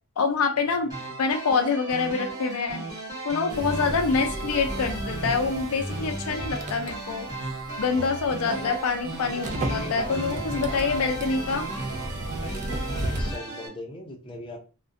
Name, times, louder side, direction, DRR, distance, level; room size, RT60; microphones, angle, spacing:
voice 1, 0.2-0.9 1.2-2.8 3.2-7.3 7.8-11.6, left 4 dB, 85° left, 6 dB, 0.4 m, -26 dB
sound 1, 0.9-13.7, right 2 dB, 15° right, 1.1 m, -36 dB
sound 2, 3.5-13.4, right 1 dB, 35° right, 0.3 m, -35 dB
sound 3, 3.6-12.3, right 1 dB, 65° right, 0.7 m, -38 dB
voice 2, 8.4-8.7 9.2-10.9 12.2-14.6, left 2 dB, 25° left, 0 dB, 0.5 m, -39 dB
2.4 x 2.1 x 2.5 m, 0.36 s
head